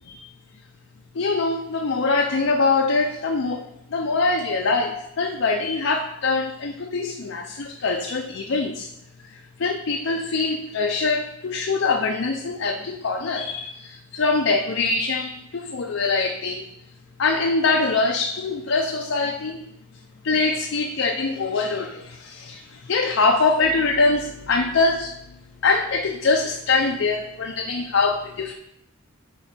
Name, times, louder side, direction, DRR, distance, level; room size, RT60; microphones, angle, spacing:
voice 1, 1.1-8.9 9.3-16.7 17.2-19.7 20.2-25.2 25.6-28.5, left 3 dB, 60° left, 3 dB, 0.5 m, -23 dB
10.5 x 3.9 x 4.2 m, 0.83 s
head